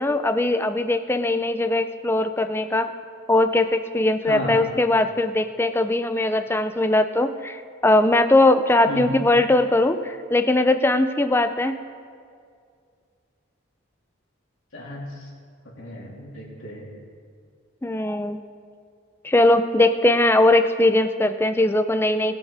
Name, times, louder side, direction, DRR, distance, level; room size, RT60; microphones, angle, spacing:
voice 1, 0.0-2.9 3.3-11.8 17.8-18.4 19.2-22.4, left 2 dB, 10° left, 9 dB, 0.4 m, -20 dB
voice 2, 4.2-4.6 8.9-9.2 14.7-15.3 15.8-16.9, left 1 dB, 75° left, -5 dB, 3.1 m, -33 dB
20.5 x 7.2 x 3.4 m, 2.2 s
head